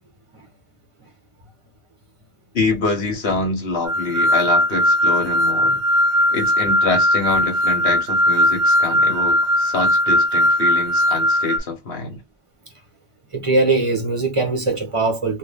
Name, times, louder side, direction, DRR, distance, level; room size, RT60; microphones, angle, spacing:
voice 1, 2.5-5.8 6.3-12.2, left 3 dB, 65° left, 1.4 m, -25 dB
sound 1, 3.9-11.6, equal, 70° right, 0.9 m, -18 dB
voice 2, 13.3-15.4, right 3 dB, 30° right, 0.9 m, -20 dB
2.8 x 2.7 x 3.4 m
omnidirectional pair, 1.2 m